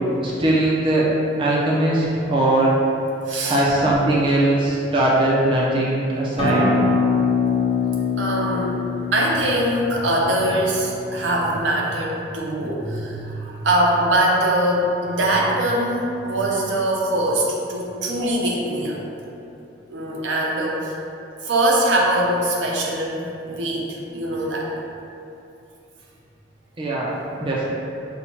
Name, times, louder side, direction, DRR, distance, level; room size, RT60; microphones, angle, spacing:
voice 1, 0.2-1.1 1.4-2.8 3.4-6.7 26.8-27.7, right 1 dB, 30° right, -5 dB, 0.4 m, -20 dB
voice 2, 3.3-3.6 8.2-8.8 9.1-19.0 19.9-20.9 21.4-24.7, right 1 dB, 75° right, -3 dB, 0.7 m, -22 dB
Acoustic guitar, 6.4-11.6, left 4 dB, 25° left, 0.7 m, -23 dB
5.5 x 2.1 x 2.9 m, 2.7 s
head